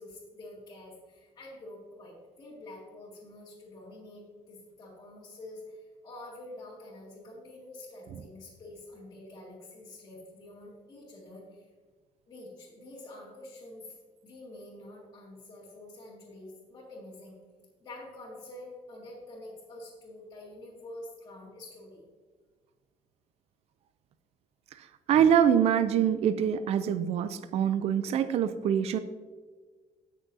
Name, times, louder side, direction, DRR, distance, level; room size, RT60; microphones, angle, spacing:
voice 1, 0.0-11.7 12.3-14.0 14.2-17.3 17.8-22.0, left 1 dB, 30° left, -7 dB, 2.0 m, -47 dB
voice 2, 24.8-29.0, right 8 dB, 50° right, 11 dB, 0.4 m, -25 dB
16.0 x 6.3 x 2.7 m, 1.4 s
cardioid pair, 180°, 13 cm